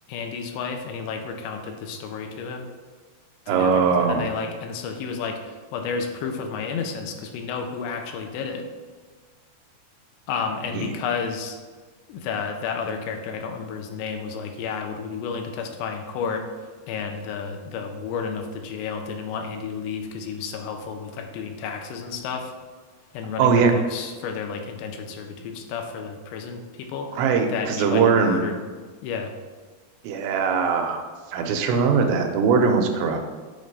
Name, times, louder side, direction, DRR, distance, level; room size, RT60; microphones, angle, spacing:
voice 1, 0.1-2.7 3.5-8.7 10.3-11.6 12.1-16.5 16.9-22.5 23.1-27.2 27.5-28.6 29.0-29.3, left 5 dB, 85° left, 4 dB, 2.9 m, -31 dB
voice 2, 3.5-4.2 10.7-10.9 23.4-23.7 27.1-28.4 30.0-31.0 31.3-33.2, right 5 dB, 90° right, 4 dB, 3.0 m, -20 dB
7.3 x 3.2 x 5.3 m, 1.4 s
omnidirectional pair, 4.9 m